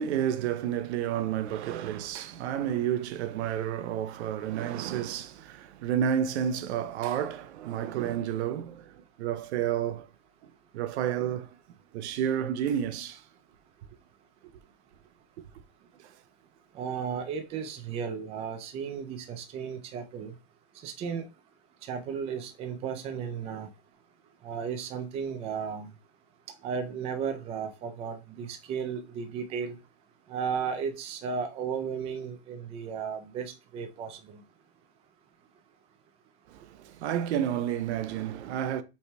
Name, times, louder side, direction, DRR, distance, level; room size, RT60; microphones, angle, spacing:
voice 1, 0.0-10.1 10.7-11.6 11.9-13.2 16.0-16.1 36.5-38.8, right 9 dB, 75° right, 0.7 m, -30 dB
voice 2, 16.7-20.3 20.8-21.3 21.8-23.7 24.4-25.9 26.6-29.8 30.3-34.4, right 6 dB, 20° right, 0.4 m, -34 dB
5.3 x 3.3 x 2.2 m
supercardioid pair, 155°, 34 cm